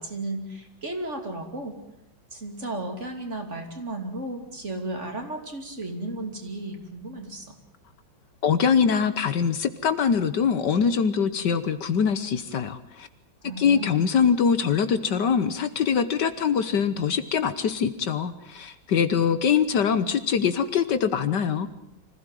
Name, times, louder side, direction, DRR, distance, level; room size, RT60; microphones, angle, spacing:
voice 1, 0.0-1.8 2.3-7.5 13.4-13.9, right 2 dB, 35° right, 4 dB, 3.2 m, -34 dB
voice 2, 8.4-13.1 13.6-21.7, left 7 dB, 65° left, 11 dB, 1.6 m, -23 dB
25.5 x 16.0 x 9.2 m, 0.81 s
omnidirectional pair, 2.1 m